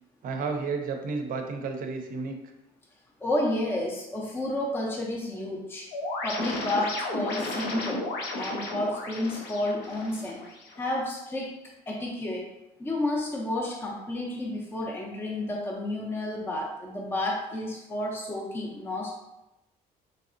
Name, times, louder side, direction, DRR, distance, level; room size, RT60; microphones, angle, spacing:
voice 1, 0.2-2.4, right 4 dB, 55° right, 4 dB, 0.5 m, -32 dB
voice 2, 3.2-5.9 6.2-8.0 8.4-10.4 10.8-11.5 11.9-12.5 12.8-19.2, left 1 dB, 15° left, -2 dB, 0.5 m, -31 dB
sound 1, 5.9-10.9, left 2 dB, 90° left, 0.7 m, -34 dB
3.1 x 2.7 x 2.5 m, 0.95 s
cardioid pair, 110°, 17 cm